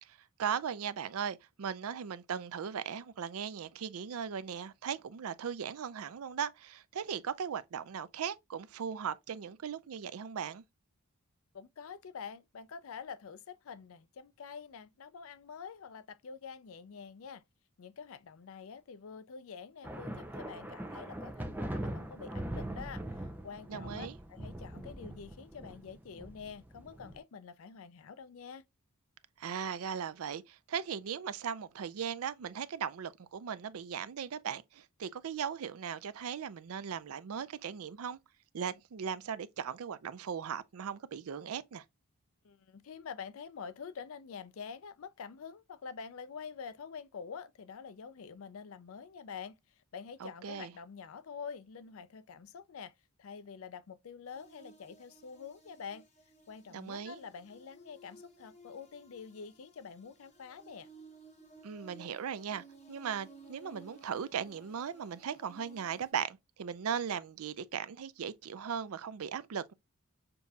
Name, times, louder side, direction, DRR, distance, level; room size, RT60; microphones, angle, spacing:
voice 1, 0.0-10.6 23.7-24.2 29.4-38.2 38.5-41.8 50.2-50.7 56.7-57.2 61.6-69.7, right 7 dB, 70° right, 0.4 m, -38 dB
voice 2, 11.5-17.4 17.8-28.7 42.4-52.9 53.2-56.0 56.5-60.9, left 6 dB, 65° left, 0.4 m, -47 dB
sound 1, 19.8-27.2, right 1 dB, 10° right, 0.5 m, -41 dB
sound 2, 54.3-66.1, right 3 dB, 30° left, 1.3 m, -58 dB
6.7 x 2.7 x 2.3 m
head